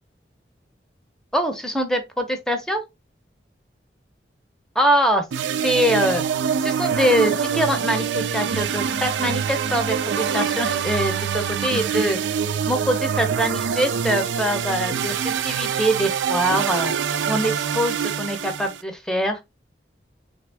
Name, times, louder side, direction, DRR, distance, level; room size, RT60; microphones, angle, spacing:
voice 1, 1.3-2.8 4.7-5.2 5.6-6.2 6.6-12.2 12.7-16.9 17.3-19.4, equal, 5° left, 0.7 m, -23 dB
sound 1, 5.3-18.8, right 7 dB, 90° right, 0.4 m, -25 dB
3.4 x 3.4 x 3.3 m
head